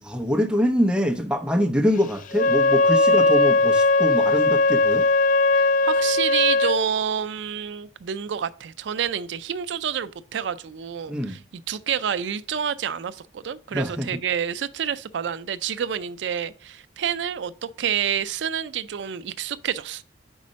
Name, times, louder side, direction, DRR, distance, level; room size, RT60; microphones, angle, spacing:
voice 1, 0.1-5.1 11.1-11.4 13.7-14.1, equal, 5° right, 0.7 m, -24 dB
Wind instrument woodwind instrument, 2.3-6.8, left 3 dB, 45° left, 0.4 m, -19 dB
voice 2, 5.5-11.4 11.7-20.0, right 8 dB, 75° right, 0.4 m, -28 dB
5.4 x 4.2 x 5.1 m
head